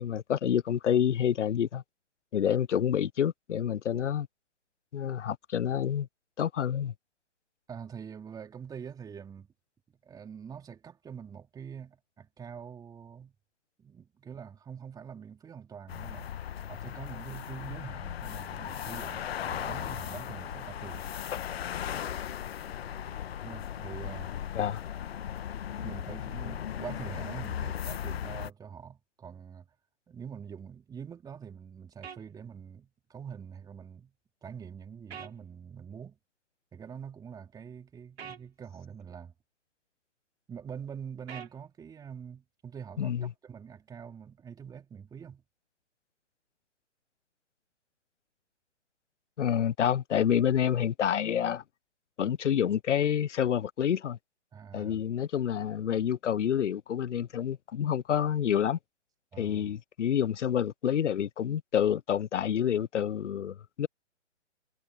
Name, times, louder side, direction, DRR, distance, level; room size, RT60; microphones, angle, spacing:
voice 1, 0.0-1.8 2.3-4.3 4.9-6.1 6.4-6.9 24.5-24.8 43.0-43.3 49.4-51.6 52.2-54.2 54.7-58.8 59.4-63.9, left 9 dB, 75° left, 0.7 m, -28 dB
voice 2, 7.7-9.5 10.0-13.4 13.8-16.3 16.7-21.0 23.4-24.3 25.7-29.7 30.1-34.1 34.4-36.2 36.7-39.3 40.5-45.4 54.5-55.0 59.3-59.7, right 7 dB, 10° right, 2.7 m, -44 dB
sound 1, 15.9-28.5, left 9 dB, 55° left, 1.4 m, -37 dB
sound 2, 32.0-32.2 35.1-35.3 38.2-38.4 41.3-41.5, right 7 dB, 60° right, 3.1 m, -42 dB
hypercardioid pair, 135°, 36 cm